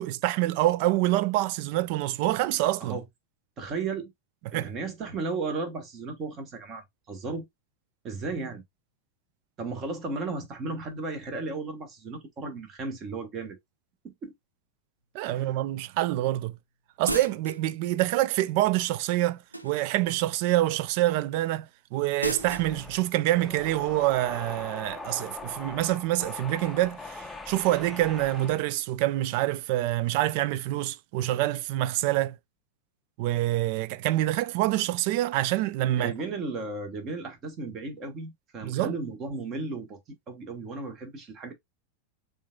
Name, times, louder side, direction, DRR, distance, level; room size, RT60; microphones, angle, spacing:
voice 1, 0.0-3.0 4.5-4.7 15.1-16.6 17.0-32.4 33.2-36.1 38.6-38.9, right 15 dB, 45° right, 0.4 m, -26 dB
voice 2, 3.6-4.1 4.5-7.5 8.0-8.6 9.6-13.6 14.0-14.3 15.3-15.6 35.9-40.0 40.3-41.5, right 3 dB, 30° right, 1.4 m, -35 dB
sound 1, 17.0-17.7 19.5-20.0 22.2-22.7, right 1 dB, 90° right, 0.7 m, -33 dB
sound 2, 22.4-28.7, left 3 dB, 10° left, 0.6 m, -41 dB
7.1 x 2.6 x 2.4 m
figure-of-eight pair, 90°, 0 cm